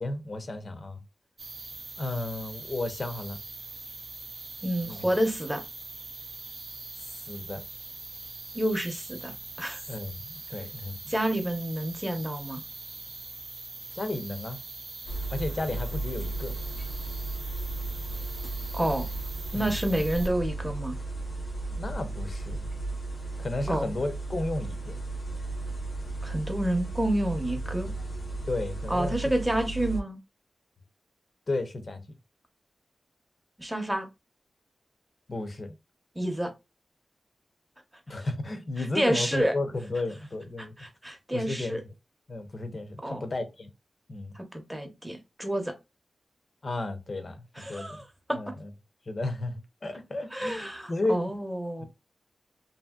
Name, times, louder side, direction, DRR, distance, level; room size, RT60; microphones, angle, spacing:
voice 1, 0.0-1.0 2.0-3.4 4.8-5.0 7.0-7.6 9.9-11.1 13.9-14.6 15.3-16.5 19.5-19.8 21.7-22.7 23.4-24.9 28.5-29.2 31.5-32.2 35.3-35.8 38.1-40.8 41.3-41.8 42.3-43.7 44.1-44.3 46.6-48.0 48.3-48.7 49.1-51.3 51.8-51.9, left 2 dB, 45° left, 0.6 m, -33 dB
sound 1, 1.4-20.3, right 3 dB, 50° right, 0.4 m, -42 dB
voice 2, 4.6-5.6 8.5-9.8 11.1-12.6 18.7-19.1 19.5-21.0 23.7-23.9 26.2-27.9 28.9-30.2 33.6-34.1 36.2-36.5 38.8-39.5 40.8-41.8 43.0-43.2 44.3-45.7 47.6-48.0 48.3-48.5 50.3-51.8, right 1 dB, 10° right, 0.7 m, -29 dB
sound 2, 15.1-30.0, right 2 dB, 75° left, 0.8 m, -35 dB
2.7 x 2.7 x 2.2 m
wide cardioid pair, 105°, 0 cm